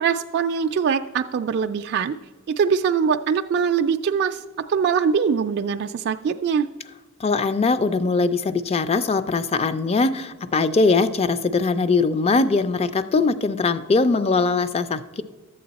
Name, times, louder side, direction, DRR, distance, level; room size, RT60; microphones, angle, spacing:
voice 1, 0.0-2.2 2.5-4.4 4.7-6.7, right 6 dB, 50° right, 6 dB, 0.3 m, -22 dB
voice 2, 7.2-15.2, left 3 dB, 30° left, 13 dB, 0.4 m, -21 dB
12.0 x 7.7 x 4.0 m, 1.3 s
head